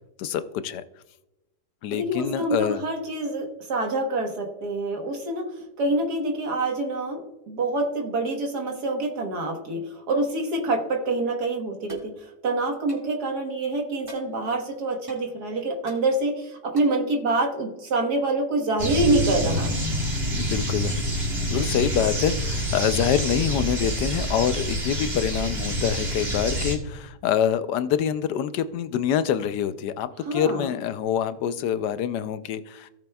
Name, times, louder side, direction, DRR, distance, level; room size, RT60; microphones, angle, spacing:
voice 1, 0.2-0.8 1.8-2.8 20.3-21.0 21.5-32.9, left 9 dB, 85° left, 12 dB, 1.2 m, -26 dB
voice 2, 1.9-12.1 12.4-19.8 30.3-30.7, right 2 dB, 75° right, 2 dB, 1.9 m, -26 dB
sound 1, 11.9-12.1 12.9-13.1 14.0-14.3 15.1-15.2 15.9-16.0 16.8-17.0, right 2 dB, 20° right, 2.1 m, -43 dB
sound 2, 18.8-26.8, equal, 35° right, 2.0 m, -27 dB
17.0 x 6.9 x 2.3 m, 0.93 s
omnidirectional pair, 1.8 m